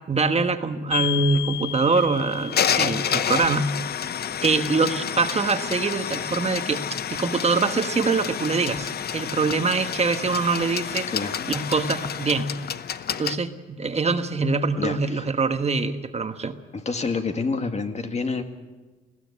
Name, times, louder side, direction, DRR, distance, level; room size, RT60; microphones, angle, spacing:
voice 1, 0.1-3.7 4.4-6.8 7.1-11.1 11.5-12.5 13.1-16.5, right 4 dB, 30° right, 8 dB, 1.3 m, -24 dB
sound 1, 0.9-13.4, left 9 dB, 55° left, 0.8 m, -29 dB
voice 2, 11.1-11.5 14.8-15.2 16.7-18.4, left 4 dB, 35° left, 6 dB, 1.8 m, -28 dB
20.0 x 16.0 x 8.4 m, 1.3 s
cardioid pair, 90°, 20 cm